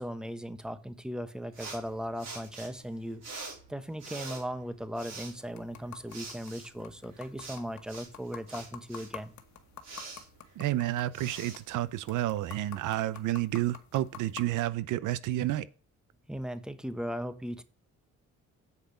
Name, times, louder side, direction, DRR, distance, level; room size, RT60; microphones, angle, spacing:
voice 1, 0.0-3.4 3.7-9.3 16.3-17.6, equal, ahead, 1.0 m, -38 dB
sound 1, 1.5-12.5, right 3 dB, 60° right, 4.4 m, -47 dB
sound 2, 5.4-14.4, left 8 dB, 70° left, 1.4 m, -50 dB
voice 2, 10.6-15.7, right 14 dB, 90° right, 0.7 m, -30 dB
8.4 x 4.9 x 6.7 m
cardioid pair, 90°, 30 cm